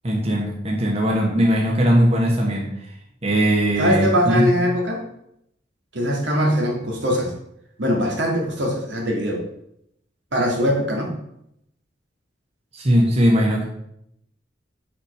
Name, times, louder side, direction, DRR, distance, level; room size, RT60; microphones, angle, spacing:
voice 1, 0.0-2.9 3.2-4.5 12.7-13.6, equal, 35° right, -1 dB, 1.3 m, -19 dB
voice 2, 3.8-5.0 5.9-7.3 7.8-9.4 10.3-11.1, equal, 75° right, 0 dB, 1.9 m, -21 dB
5.8 x 5.1 x 5.9 m, 0.77 s
head